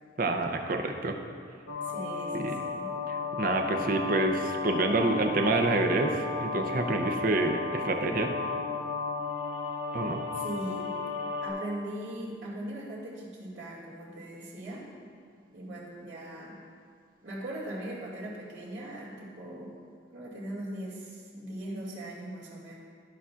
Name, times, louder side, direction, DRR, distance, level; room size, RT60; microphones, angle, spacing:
voice 1, 0.2-1.2 2.3-2.5 3.1-8.3 9.9-10.2, right 2 dB, 45° right, 4 dB, 0.6 m, -28 dB
sound 1, 1.7-11.5, left 4 dB, 75° left, 0.9 m, -34 dB
voice 2, 1.8-2.9 10.3-11.0 11.4-14.9 15.5-16.6 17.2-19.8 20.1-22.7, right 1 dB, 70° right, -6 dB, 2.1 m, -40 dB
14.0 x 5.7 x 2.4 m, 2.2 s
head